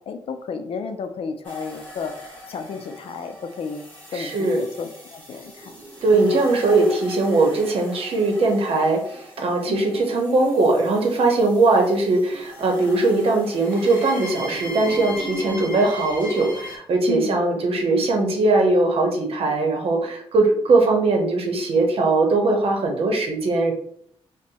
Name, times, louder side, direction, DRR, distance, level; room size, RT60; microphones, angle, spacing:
voice 1, 0.0-3.8 4.1-5.7 6.1-6.4 9.7-10.0 17.1-17.4, left 5 dB, 65° left, 7 dB, 0.4 m, -33 dB
sound 1, 1.4-16.8, left 1 dB, 15° left, 1.1 m, -38 dB
voice 2, 4.1-4.6 6.0-23.7, right 2 dB, 65° right, 1 dB, 0.8 m, -20 dB
2.6 x 2.1 x 4.0 m, 0.67 s
wide cardioid pair, 120°, 10 cm